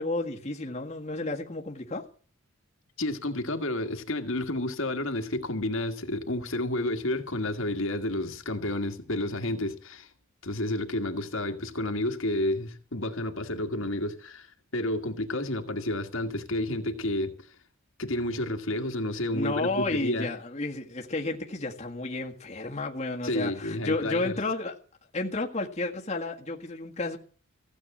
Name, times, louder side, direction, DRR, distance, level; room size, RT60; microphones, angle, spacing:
voice 1, 0.0-2.0 19.3-24.8 25.1-27.2, left 2 dB, 30° left, 1.7 m, -32 dB
voice 2, 3.0-10.1 10.4-17.5 18.0-20.3 23.2-24.3, left 1 dB, 70° left, 1.9 m, -30 dB
16.0 x 8.1 x 8.7 m
head